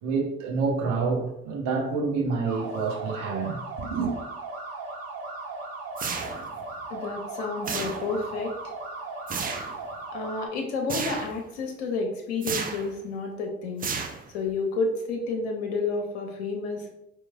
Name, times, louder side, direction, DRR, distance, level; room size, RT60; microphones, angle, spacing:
voice 1, 0.0-4.1, right 4 dB, 65° right, 0.9 m, -28 dB
sound 1, 2.4-10.5, right 3 dB, 45° right, 1.3 m, -37 dB
sound 2, 6.0-6.6 7.6-8.3 9.3-9.8 10.9-11.4 12.4-12.9 13.8-14.5, right 5 dB, 25° right, 0.5 m, -32 dB
voice 2, 6.9-8.6 10.1-13.9 14.3-16.9, left 3 dB, 80° left, 0.6 m, -30 dB
4.4 x 3.1 x 2.2 m
hypercardioid pair, 50°, 32 cm